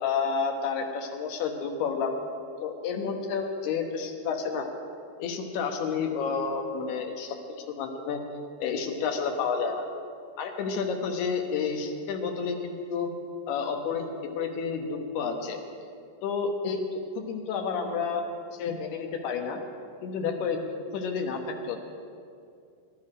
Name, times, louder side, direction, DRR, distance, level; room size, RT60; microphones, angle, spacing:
voice 1, 0.0-2.1 2.6-4.7 5.2-7.4 7.7-8.2 8.6-9.8 10.4-13.1 13.5-14.1 14.4-15.6 16.2-16.8 17.3-19.6 20.0-20.6 20.9-21.8, left 5 dB, 70° left, 3 dB, 3.1 m, -30 dB
22.5 x 12.0 x 5.0 m, 2.4 s
omnidirectional pair, 5.0 m